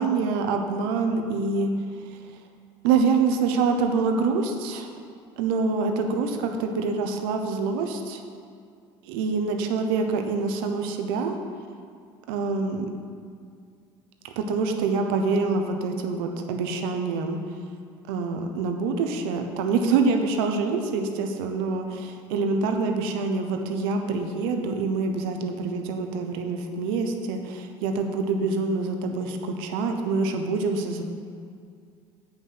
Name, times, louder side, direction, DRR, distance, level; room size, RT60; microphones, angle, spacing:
voice 1, 0.0-1.7 2.1-2.2 2.8-4.9 5.4-8.2 9.0-11.4 12.3-12.9 14.2-17.4 18.1-31.0, right 4 dB, 85° right, 5 dB, 1.0 m, -26 dB
8.4 x 5.9 x 5.8 m, 2.3 s
supercardioid pair, 95°, 12 cm